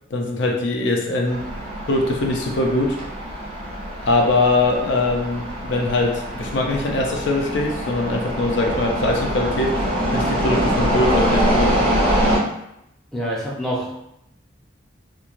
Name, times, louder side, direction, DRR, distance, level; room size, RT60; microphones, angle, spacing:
voice 1, 0.1-1.4 1.9-3.0 4.1-11.7, left 2 dB, 70° left, 1 dB, 0.5 m, -22 dB
sound 1, 1.3-12.4, equal, 30° right, 0.8 m, -24 dB
voice 2, 13.1-14.0, equal, 5° left, -6 dB, 0.5 m, -26 dB
3.0 x 2.1 x 2.5 m, 0.80 s
head